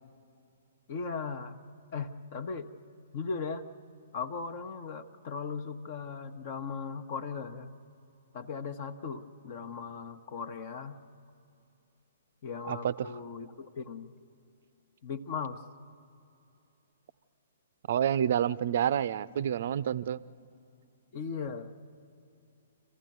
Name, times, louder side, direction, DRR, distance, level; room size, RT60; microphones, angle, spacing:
voice 1, 0.9-1.6 1.9-2.7 3.1-3.6 4.1-7.7 8.3-11.0 12.4-14.1 15.0-15.6 21.1-21.9, left 5 dB, 45° left, 8 dB, 1.0 m, -38 dB
voice 2, 12.7-13.1 17.9-20.2, right 9 dB, 50° right, 18 dB, 0.5 m, -28 dB
26.5 x 15.0 x 9.3 m, 2.8 s
figure-of-eight pair, 120°, 0 cm